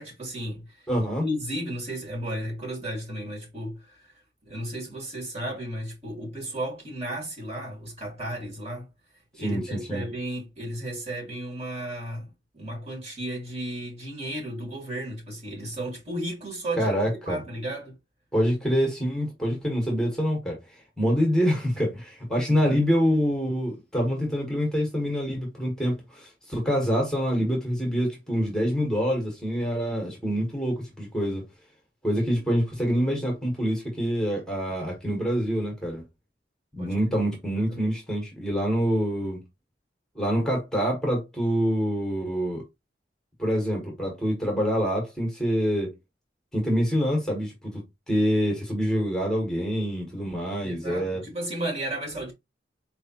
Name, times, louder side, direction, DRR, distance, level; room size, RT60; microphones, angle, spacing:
voice 1, 0.0-0.9 1.2-4.1 4.4-8.9 9.4-12.3 12.5-18.0 22.6-22.8 36.8-37.2 37.5-37.9 50.6-52.3, right 1 dB, 35° right, 1.8 m, -34 dB
voice 2, 0.9-1.3 9.4-10.1 16.8-17.4 18.3-20.6 21.0-31.5 32.0-36.0 36.7-39.4 40.1-42.6 43.4-45.9 46.5-51.2, equal, 5° left, 1.3 m, -26 dB
4.5 x 3.2 x 2.9 m
head